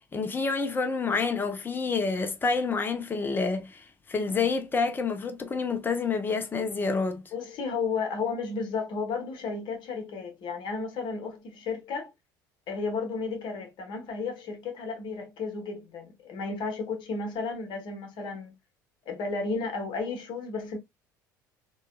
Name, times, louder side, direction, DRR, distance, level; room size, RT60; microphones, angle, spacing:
voice 1, 0.1-7.2, left 4 dB, 20° left, 0.7 m, -28 dB
voice 2, 7.3-12.1 12.7-18.5 19.1-20.8, left 4 dB, 45° left, 1.1 m, -33 dB
3.9 x 2.3 x 2.2 m
figure-of-eight pair, 60°, 11 cm